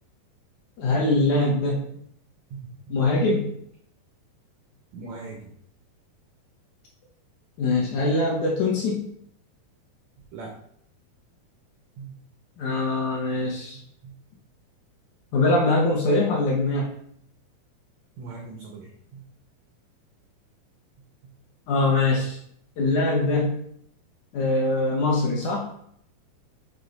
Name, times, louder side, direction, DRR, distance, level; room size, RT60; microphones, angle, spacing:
voice 1, 0.8-1.8 2.9-3.5 7.6-9.1 12.6-13.8 15.3-16.9 21.7-22.4 22.8-23.6 24.3-25.7, left 2 dB, 70° left, -2 dB, 2.0 m, -23 dB
voice 2, 2.5-2.9 4.9-5.5 10.3-10.5 12.0-12.2 14.0-14.1 18.2-19.2, right 4 dB, 90° right, 1 dB, 1.5 m, -40 dB
7.0 x 3.7 x 4.0 m, 0.69 s
omnidirectional pair, 4.3 m